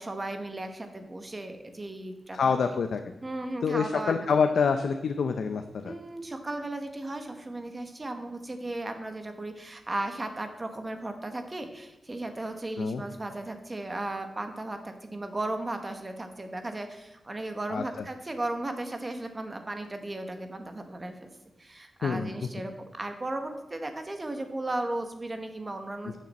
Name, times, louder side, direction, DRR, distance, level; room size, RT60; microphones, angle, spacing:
voice 1, 0.0-2.5 3.2-4.4 5.8-21.3 21.6-26.2, right 2 dB, 25° right, 6 dB, 1.0 m, -36 dB
voice 2, 2.3-3.2 3.6-5.9 12.8-13.0 17.7-18.1 22.0-22.3 26.0-26.2, left 5 dB, 80° left, 7 dB, 0.5 m, -27 dB
12.0 x 6.7 x 4.1 m, 0.96 s
wide cardioid pair, 150°, 0 cm